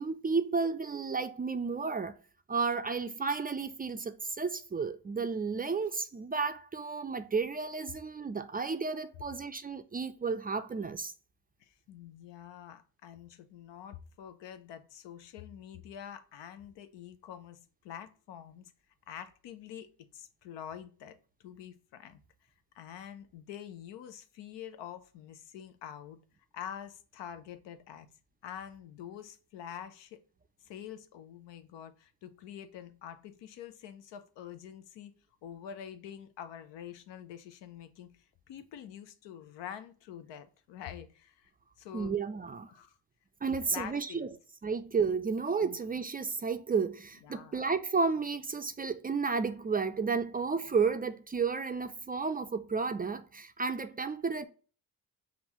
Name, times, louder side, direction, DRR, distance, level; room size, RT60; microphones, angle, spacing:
voice 1, 0.0-2.2 2.5-11.1 41.9-42.7 43.4-44.3 44.6-54.5, right 5 dB, 25° right, 0.3 m, -32 dB
voice 2, 11.6-18.7 19.1-21.2 21.4-22.2 22.7-26.2 26.5-28.1 28.4-30.2 30.6-35.1 35.4-41.5 41.8-42.2 42.7-43.0 43.5-44.4 45.6-45.8 47.2-47.6, left 9 dB, 85° left, 0.6 m, -46 dB
5.2 x 2.4 x 3.0 m
supercardioid pair, 60°, 42 cm